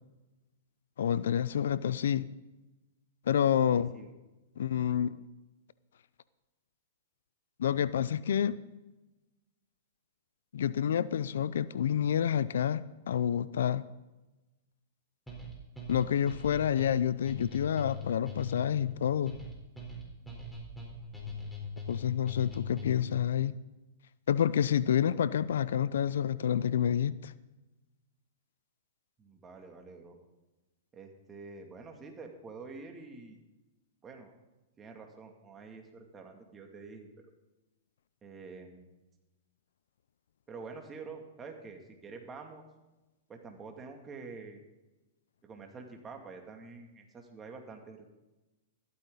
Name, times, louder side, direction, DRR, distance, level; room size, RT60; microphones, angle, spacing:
voice 1, 1.0-2.3 3.3-3.9 4.6-5.1 7.6-8.6 10.5-13.9 15.9-19.3 21.9-23.5 24.3-27.3, left 9 dB, 75° left, 18 dB, 0.5 m, -28 dB
voice 2, 3.7-4.1 25.0-25.3 29.2-30.2 30.9-33.4 34.0-34.3 34.8-37.3 38.2-39.0 40.5-42.6 43.3-44.6 45.4-48.1, right 4 dB, 20° right, 3 dB, 2.5 m, -47 dB
sound 1, 15.3-23.2, left 3 dB, 5° left, 4.1 m, -41 dB
14.5 x 13.0 x 4.0 m, 1.1 s
hypercardioid pair, 120°, 0 cm